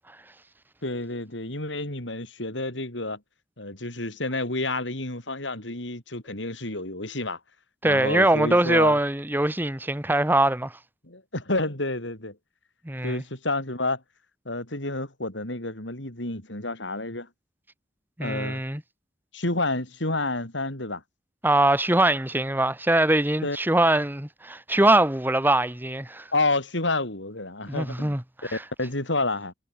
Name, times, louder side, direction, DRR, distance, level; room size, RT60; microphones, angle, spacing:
voice 1, 0.8-3.2 3.6-7.4 7.8-9.0 11.0-12.4 13.0-14.0 14.4-17.3 18.2-18.6 19.3-21.0 23.4-23.6 26.3-28.2 28.5-29.5, left 2 dB, 75° left, 6.1 m, -29 dB
voice 2, 7.8-10.7 12.8-13.2 18.2-18.8 21.4-26.3 27.7-28.6, right 1 dB, 10° right, 1.3 m, -22 dB
head